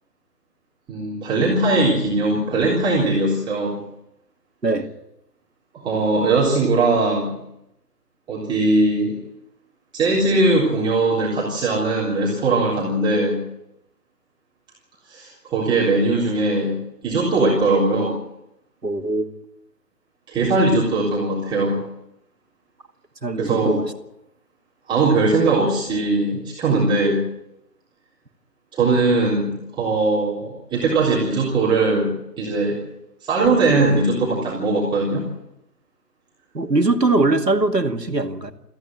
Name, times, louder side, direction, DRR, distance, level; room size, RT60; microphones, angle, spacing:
voice 1, 0.9-3.8 5.7-7.3 8.3-9.2 9.9-13.4 15.1-16.8 17.0-18.2 20.3-21.8 23.4-23.8 24.9-27.2 28.7-32.8 33.2-35.3, right 2 dB, 10° right, 3.7 m, -20 dB
voice 2, 18.8-19.3 23.2-23.9 36.5-38.5, right 2 dB, 85° right, 2.3 m, -21 dB
25.0 x 15.0 x 7.9 m
figure-of-eight pair, 145°, 48 cm